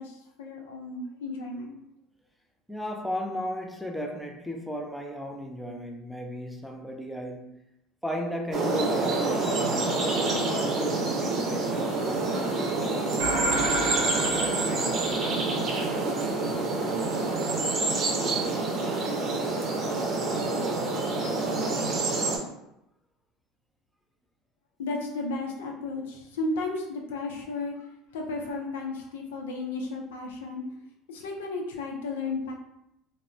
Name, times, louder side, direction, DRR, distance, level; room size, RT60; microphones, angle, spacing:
voice 1, 0.0-1.7 24.8-30.6 31.1-32.5, left 3 dB, 85° left, 0.5 m, -34 dB
voice 2, 2.7-7.6 8.0-14.9, equal, ahead, 0.4 m, -36 dB
sound 1, 8.5-22.4, right 3 dB, 45° right, 0.6 m, -27 dB
sound 2, 13.2-15.8, right 1 dB, 85° right, 0.7 m, -31 dB
2.3 x 2.0 x 3.2 m
supercardioid pair, 90°, 0 cm